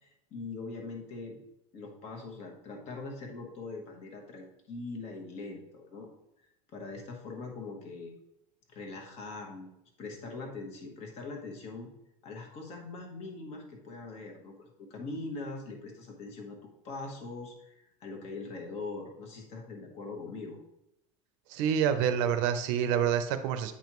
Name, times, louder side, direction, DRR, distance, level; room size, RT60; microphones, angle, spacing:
voice 1, 0.0-1.4 1.7-6.1 6.4-8.1 8.7-11.9 12.2-20.6, left 3 dB, 40° left, 2 dB, 1.3 m, -42 dB
voice 2, 21.5-23.7, right 8 dB, 65° right, 9 dB, 0.7 m, -27 dB
8.5 x 5.2 x 3.1 m, 0.85 s
cardioid pair, 175°, 17 cm